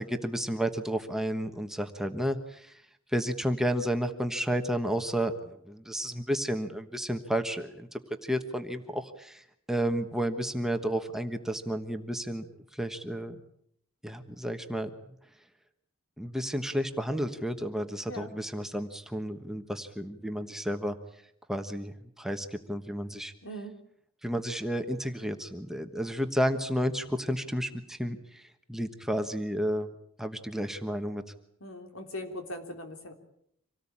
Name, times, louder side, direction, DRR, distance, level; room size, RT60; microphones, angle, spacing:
voice 1, 0.0-2.8 3.1-12.5 12.7-13.3 14.0-14.9 16.2-21.0 21.5-23.3 24.2-29.9 30.2-31.2, equal, ahead, 6 dB, 1.3 m, -32 dB
voice 2, 23.4-23.8 31.6-33.1, equal, 75° left, 5 dB, 3.6 m, -40 dB
26.0 x 18.0 x 8.7 m, 0.71 s
head